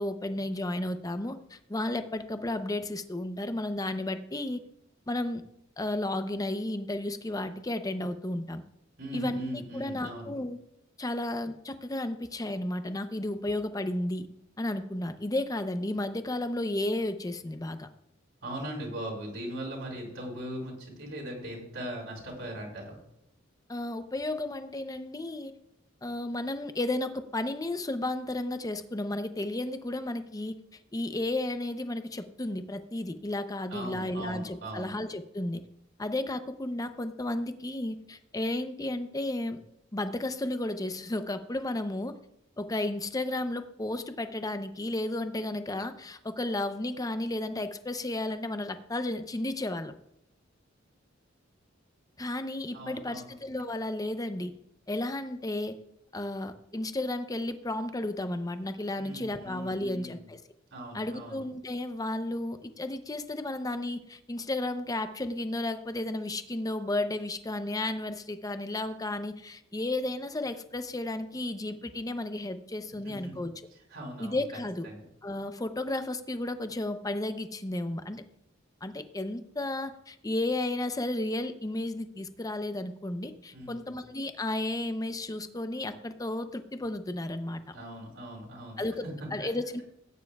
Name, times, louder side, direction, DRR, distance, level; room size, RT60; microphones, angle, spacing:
voice 1, 0.0-4.6 5.1-5.4 5.8-8.6 9.1-10.6 11.0-14.3 14.6-17.9 23.7-25.5 26.0-30.6 30.9-35.6 36.0-39.6 39.9-42.2 42.6-49.9 52.2-54.5 54.9-55.8 56.1-60.4 60.9-73.5 74.2-74.9 75.2-78.2 78.8-87.8 88.8-89.0 89.3-89.8, left 1 dB, 20° left, 9 dB, 0.6 m, -33 dB
voice 2, 9.0-10.3 18.4-23.0 33.7-34.9 52.7-53.3 59.0-60.2 60.7-61.4 73.0-73.4 73.9-74.4 74.8-75.0 83.5-83.9 87.7-89.1 89.4-89.5, equal, 70° right, -3 dB, 4.7 m, -39 dB
17.5 x 9.4 x 2.3 m, 0.76 s
head